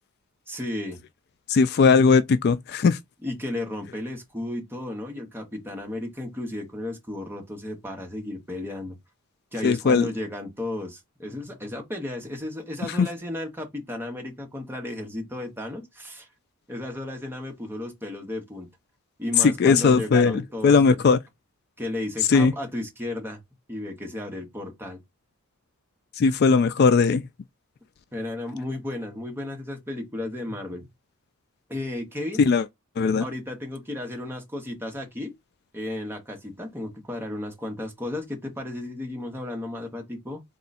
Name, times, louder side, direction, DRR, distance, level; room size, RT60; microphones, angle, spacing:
voice 1, 0.5-1.0 3.2-9.0 9.5-16.3 16.7-18.7 19.2-21.1 21.8-23.4 23.7-25.0 28.1-30.9 31.7-32.4 33.2-35.3 35.7-40.4, left 1 dB, 10° right, 1.2 m, -34 dB
voice 2, 1.5-3.0 9.6-10.1 13.0-13.1 19.6-21.2 22.3-22.5 26.2-27.2 32.4-32.6 33.0-33.2, left 4 dB, 45° left, 0.3 m, -18 dB
3.9 x 2.3 x 4.1 m
head